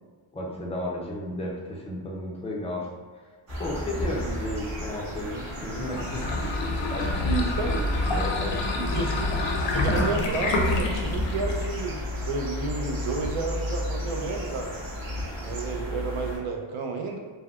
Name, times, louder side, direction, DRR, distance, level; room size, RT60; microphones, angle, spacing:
voice 1, 0.3-2.9 3.6-6.6 6.9-7.8 8.1-9.0, equal, 15° left, -3 dB, 0.3 m, -33 dB
sound 1, 3.5-16.4, left 1 dB, 40° right, 1.1 m, -33 dB
sound 2, 5.7-11.8, left 2 dB, 60° left, 0.5 m, -28 dB
voice 2, 9.8-14.7 15.4-17.2, right 3 dB, 75° right, 2 dB, 0.6 m, -31 dB
3.5 x 2.0 x 2.3 m, 1.5 s
wide cardioid pair, 135°, 50 cm